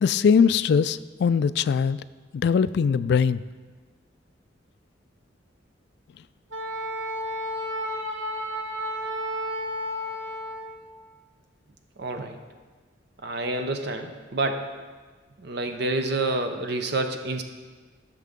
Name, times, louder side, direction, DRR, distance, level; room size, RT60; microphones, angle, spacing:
voice 1, 0.0-2.0 2.3-3.4, left 6 dB, 60° left, 15 dB, 0.3 m, -21 dB
Wind instrument woodwind instrument, 6.5-10.8, equal, 80° right, 1.1 m, -32 dB
voice 2, 12.0-12.4 13.2-14.7 15.4-17.4, right 2 dB, 60° right, 6 dB, 0.7 m, -28 dB
14.5 x 6.5 x 3.6 m, 1.4 s
head